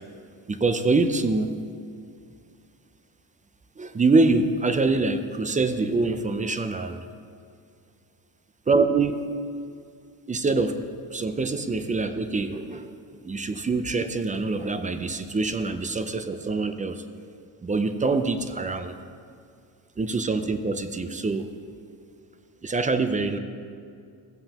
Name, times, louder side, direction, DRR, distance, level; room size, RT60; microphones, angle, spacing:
voice 1, 0.5-1.6 3.8-7.0 8.7-9.3 10.3-10.8 11.1-12.9 13.2-17.0 17.6-18.9 20.0-21.5 22.6-23.4, right 3 dB, 15° right, 9 dB, 0.5 m, -25 dB
15.5 x 7.6 x 2.9 m, 2.3 s
cardioid pair, 100°, 48 cm